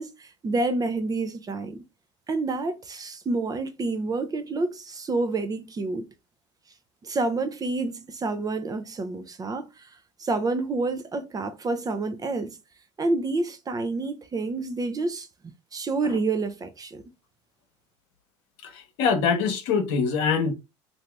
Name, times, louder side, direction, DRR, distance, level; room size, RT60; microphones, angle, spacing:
voice 1, 0.0-1.8 2.3-6.1 7.0-12.6 13.0-15.3 15.7-17.0, right 3 dB, 25° right, 0.6 m, -28 dB
voice 2, 19.0-20.5, left 5 dB, 65° left, 1.0 m, -23 dB
2.8 x 2.7 x 3.3 m
hypercardioid pair, 80°, 15 cm